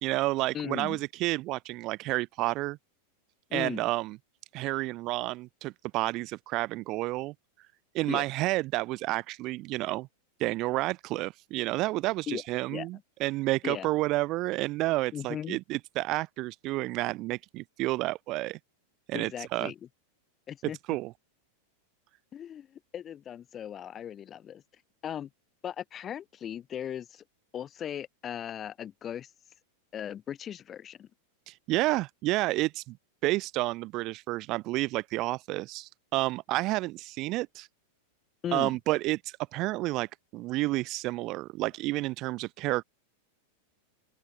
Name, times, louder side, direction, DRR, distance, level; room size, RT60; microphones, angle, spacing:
voice 1, 0.0-2.8 3.5-4.2 4.5-7.3 7.9-10.1 10.4-18.6 19.1-19.7 20.9-21.1 31.5-33.0 33.2-37.7 38.5-42.8, right 19 dB, 40° right, 1.5 m, -30 dB
voice 2, 0.5-1.0 3.5-3.8 8.1-8.2 12.3-12.4 12.7-12.9 13.6-13.9 15.1-15.6 19.1-19.8 20.5-20.8 22.3-24.6 25.0-25.3 25.6-27.2 27.5-29.3 29.9-31.1 38.4-38.8, left 9 dB, 25° left, 4.7 m, -37 dB
open air
figure-of-eight pair, 90°, 0 cm